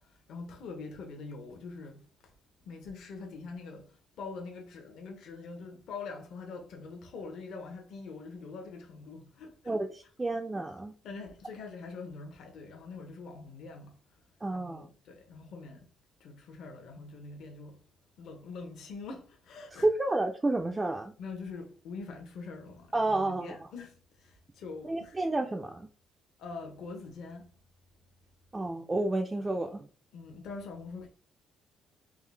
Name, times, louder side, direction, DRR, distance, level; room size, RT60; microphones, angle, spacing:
voice 1, 0.0-2.3 2.6-9.8 11.0-14.2 14.5-15.9 16.2-17.8 18.2-19.9 21.2-25.2 26.4-27.5 30.1-31.1, left 4 dB, 65° left, 0.8 m, -44 dB
voice 2, 9.7-10.9 14.4-14.9 19.8-21.1 22.9-23.6 24.8-25.9 28.5-29.9, right 2 dB, 15° right, 0.3 m, -30 dB
3.7 x 2.6 x 3.2 m
cardioid pair, 160°, 0 cm